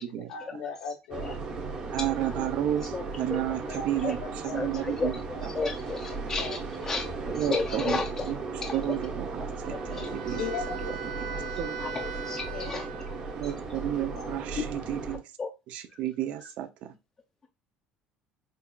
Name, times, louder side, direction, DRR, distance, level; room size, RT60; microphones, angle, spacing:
voice 1, 0.3-1.4 3.7-4.9 5.5-5.7 6.1-7.1 10.0-11.0 11.3-11.5 11.8-12.8 14.2-14.3, left 5 dB, 85° left, 0.8 m, -39 dB
sound 1, 1.1-15.2, right 4 dB, 30° right, 0.8 m, -36 dB
voice 2, 1.9-4.2 4.5-5.1 7.4-8.0 8.3-8.4 8.7-10.4 11.6-11.7 13.4-15.2 15.7-16.9, right 12 dB, 55° right, 0.4 m, -31 dB
voice 3, 4.5-8.3 8.6-9.0 9.7-10.4 11.8-12.9 14.3-14.7 15.4-15.5, left 4 dB, 20° left, 0.4 m, -33 dB
Wind instrument woodwind instrument, 9.6-13.7, right 4 dB, 90° right, 0.8 m, -40 dB
5.2 x 2.4 x 2.3 m
cardioid pair, 170°, 3 cm